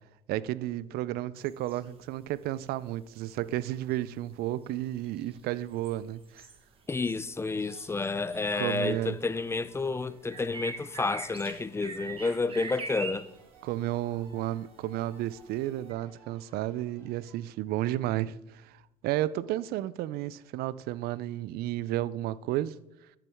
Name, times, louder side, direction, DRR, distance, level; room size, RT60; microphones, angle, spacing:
voice 1, 0.3-6.4 8.6-9.2 13.6-22.8, right 14 dB, 60° right, 0.4 m, -32 dB
sound 1, 1.4-2.4 2.6-8.9 9.2-15.9, right 4 dB, 30° right, 1.3 m, -44 dB
voice 2, 6.9-13.3, left 3 dB, 15° left, 0.4 m, -30 dB
sound 2, 7.4-17.4, right 4 dB, 85° right, 2.6 m, -60 dB
13.0 x 6.9 x 3.5 m
supercardioid pair, 85°, 18 cm